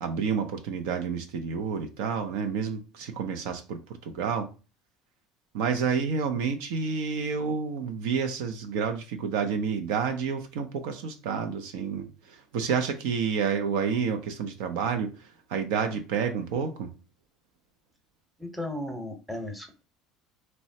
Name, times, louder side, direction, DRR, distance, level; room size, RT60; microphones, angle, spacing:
voice 1, 0.0-4.5 5.5-16.9, right 6 dB, 80° right, 0.5 m, -29 dB
voice 2, 18.4-19.8, left 1 dB, ahead, 0.7 m, -35 dB
3.0 x 2.1 x 2.7 m
supercardioid pair, 95°, 0 cm